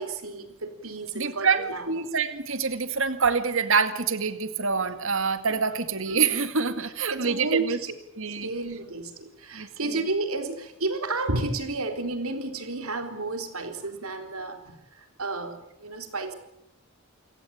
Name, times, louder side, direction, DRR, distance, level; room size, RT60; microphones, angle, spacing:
voice 1, 0.0-1.9 7.1-7.9 8.4-16.3, right 3 dB, 90° right, 6 dB, 3.9 m, -32 dB
voice 2, 1.1-7.8 8.2-8.5 9.5-10.0, right 5 dB, 65° right, 10 dB, 2.2 m, -26 dB
29.0 x 17.0 x 8.8 m, 0.82 s
head